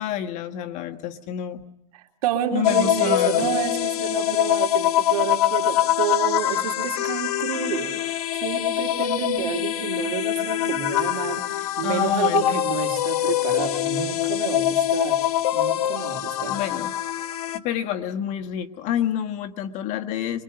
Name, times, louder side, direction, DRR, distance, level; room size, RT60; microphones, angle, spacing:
voice 1, 0.0-1.6 2.5-3.5 11.8-12.6 16.5-16.9 17.5-20.4, left 10 dB, 40° left, 7 dB, 1.5 m, -28 dB
voice 2, 1.9-15.2 15.5-16.6, right 10 dB, 70° right, 4 dB, 3.4 m, -29 dB
sound 1, 2.6-17.6, left 13 dB, 85° left, 1.2 m, -24 dB
24.5 x 23.5 x 8.8 m, 0.76 s
supercardioid pair, 150°, 19 cm